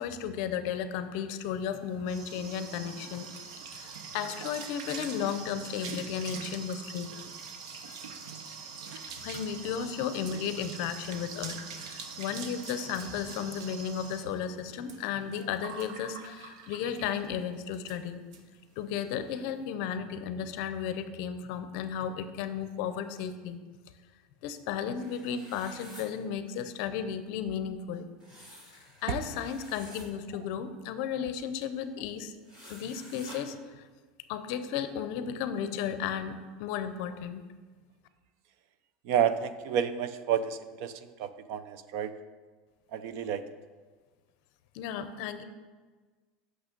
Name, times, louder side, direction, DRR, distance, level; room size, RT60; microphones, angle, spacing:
voice 1, 0.0-3.3 3.7-7.1 7.9-8.0 9.2-18.3 18.8-23.6 24.4-28.1 29.0-32.3 32.7-33.8 34.3-37.4 44.7-45.4, left 8 dB, 50° left, 10 dB, 0.6 m, -34 dB
sound 1, 1.6-17.3 17.7-18.0 18.3-18.4 18.7-19.1, right 5 dB, 75° right, 0.9 m, -43 dB
sound 2, 25.0-26.0 28.2-30.1 32.4-33.4, equal, 30° right, 2.0 m, -51 dB
voice 2, 39.0-42.1 42.9-43.4, right 8 dB, 55° right, 12 dB, 0.5 m, -30 dB
8.7 x 6.4 x 5.2 m, 1.4 s
supercardioid pair, 175°, 3 cm